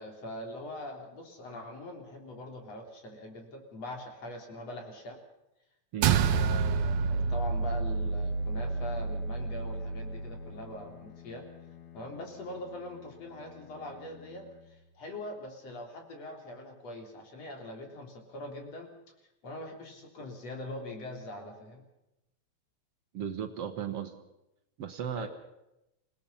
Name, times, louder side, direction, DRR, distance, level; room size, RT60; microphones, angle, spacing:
voice 1, 0.0-5.2 6.1-11.4 11.9-18.9 19.4-21.8 25.2-25.3, left 1 dB, 60° left, 2 dB, 4.7 m, -42 dB
sound 1, 6.0-10.6, right 5 dB, 85° right, 2.3 m, -29 dB
Bowed string instrument, 7.5-15.5, left 9 dB, 80° left, 3.8 m, -52 dB
voice 2, 23.1-24.2 24.8-25.3, right 8 dB, 60° right, 7 dB, 2.2 m, -35 dB
28.0 x 18.0 x 5.7 m, 0.89 s
omnidirectional pair, 3.3 m